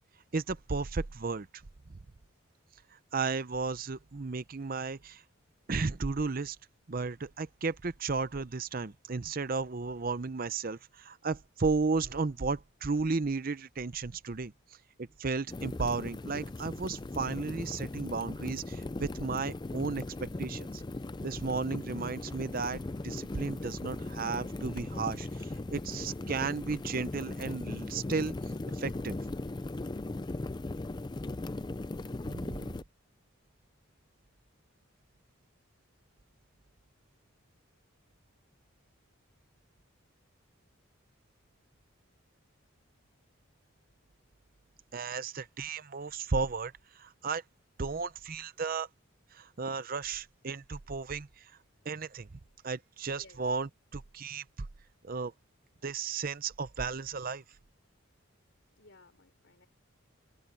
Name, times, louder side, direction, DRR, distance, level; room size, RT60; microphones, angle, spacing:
voice 1, 0.3-1.5 3.1-5.2 5.7-6.6 6.9-14.5 15.0-20.1 20.4-20.8 21.2-28.4 28.7-29.2 32.2-32.7 44.9-47.4 47.8-48.9 49.3-51.5 51.9-52.3 52.6-54.7 55.0-55.3 55.8-57.4, right 4 dB, 45° right, 0.6 m, -34 dB
sound 1, 15.5-32.8, left 2 dB, 20° left, 0.4 m, -38 dB
sound 2, 22.1-27.4, equal, 5° left, 2.1 m, -60 dB
voice 2, 53.1-53.4 58.8-59.7, left 2 dB, 60° left, 3.6 m, -58 dB
head